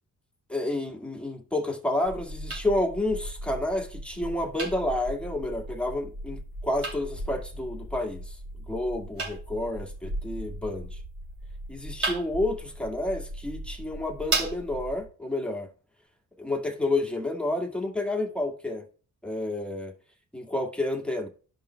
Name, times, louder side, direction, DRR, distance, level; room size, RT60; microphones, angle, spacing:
voice 1, 0.5-8.4 8.7-11.0 11.7-15.7 16.4-18.9 19.2-19.9 20.3-21.3, left 1 dB, 5° left, 1.8 m, -30 dB
sound 1, 2.1-15.1, right 2 dB, 45° right, 2.5 m, -36 dB
13.5 x 5.3 x 2.2 m
cardioid pair, 95°, 32 cm